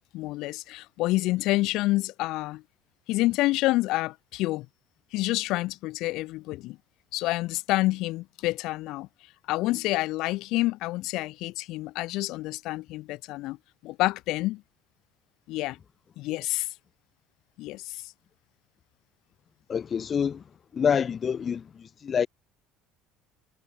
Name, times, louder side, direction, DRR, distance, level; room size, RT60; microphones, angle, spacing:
voice 1, 0.1-2.6 3.1-4.7 5.1-6.8 7.1-9.1 9.5-13.6 13.8-14.6 15.5-15.8 16.2-16.7 17.6-18.0, left 19 dB, 60° left, 2.0 m, -28 dB
voice 2, 19.7-20.4 20.7-21.6 22.0-22.3, left 7 dB, 25° left, 0.9 m, -26 dB
cardioid pair, 160°, 0 cm